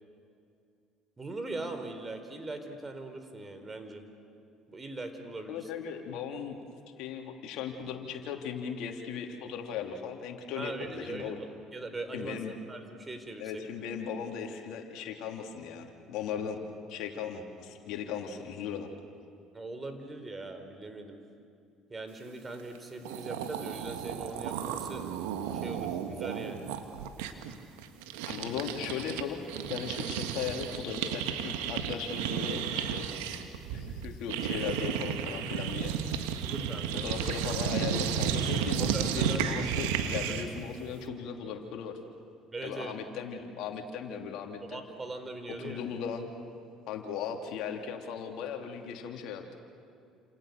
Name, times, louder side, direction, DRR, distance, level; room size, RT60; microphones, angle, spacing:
voice 1, 1.2-4.1 4.7-5.7 10.6-12.4 12.7-13.6 19.5-21.2 21.9-25.0 25.5-26.7 36.4-37.1 38.9-39.4 40.2-40.3 42.5-42.9 44.7-45.8, right 2 dB, 25° right, 7 dB, 4.2 m, -40 dB
voice 2, 5.5-6.6 7.0-11.4 12.1-12.5 13.4-16.6 16.9-18.9 28.3-33.0 33.7-35.9 36.9-41.9 42.6-44.8 45.6-46.3 46.9-49.6, left 7 dB, 65° left, 3 dB, 3.0 m, -37 dB
sound 1, 22.7-22.8 23.0-29.2 29.5-40.6, right 8 dB, 80° right, 1.7 m, -33 dB
29.0 x 28.0 x 6.7 m, 2.5 s
hypercardioid pair, 65°, 0 cm